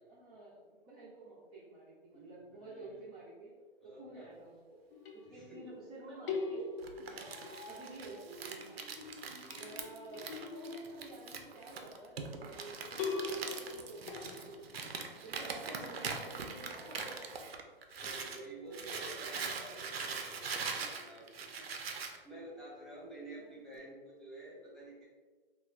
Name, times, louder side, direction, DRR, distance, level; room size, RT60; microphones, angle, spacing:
voice 1, 0.0-3.5 3.8-4.5 5.1-8.9 9.5-14.5 15.2-17.4 18.0-20.0 20.7-21.0 21.4-21.7 23.4-24.0, right 2 dB, 15° right, -8 dB, 0.3 m, -51 dB
voice 2, 2.1-3.0 3.8-4.4 5.2-5.6 8.8-9.8 14.0-14.6 18.0-21.7 22.0-25.0, right 1 dB, ahead, -7 dB, 0.8 m, -51 dB
sound 1, 4.9-5.8 6.3-8.3 8.6-11.6 13.0-14.6, left 4 dB, 65° left, 0.6 m, -42 dB
Crumpling crinkling, 6.8-18.4 18.7-22.2, right 5 dB, 90° right, 0.5 m, -42 dB
3.2 x 2.2 x 2.3 m, 1.4 s
hypercardioid pair, 125°, 29 cm